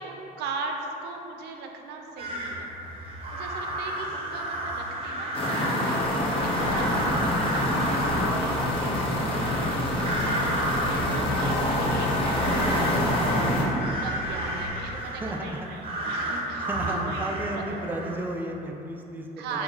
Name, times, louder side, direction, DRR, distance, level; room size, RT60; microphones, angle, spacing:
voice 1, 0.0-2.8 3.3-13.4 14.0-17.8 19.4-19.6, right 4 dB, 80° right, 3 dB, 0.5 m, -39 dB
sound 1, 2.2-18.4, right 1 dB, 35° right, 0.8 m, -33 dB
sound 2, 5.3-13.6, left 1 dB, 30° left, 0.7 m, -26 dB
sound 3, 6.0-14.7, left 3 dB, 70° left, 0.4 m, -34 dB
voice 2, 15.1-15.7 16.3-19.6, right 1 dB, 10° right, 1 dB, 0.3 m, -34 dB
5.1 x 3.1 x 2.4 m, 3.0 s
cardioid pair, 110°, 17 cm